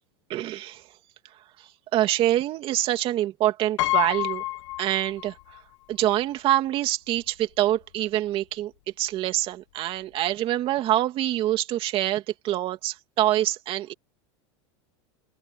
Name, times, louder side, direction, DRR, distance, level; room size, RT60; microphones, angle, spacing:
voice 1, 0.3-0.8 1.9-4.4 4.8-5.3 5.9-8.7 9.0-13.9, right 13 dB, 35° right, 2.8 m, -25 dB
Piano, 3.8-5.6 5.9-6.0 7.2-7.3 7.6-7.8, left 18 dB, 80° left, 1.9 m, -28 dB
open air
supercardioid pair, 150°, 15 cm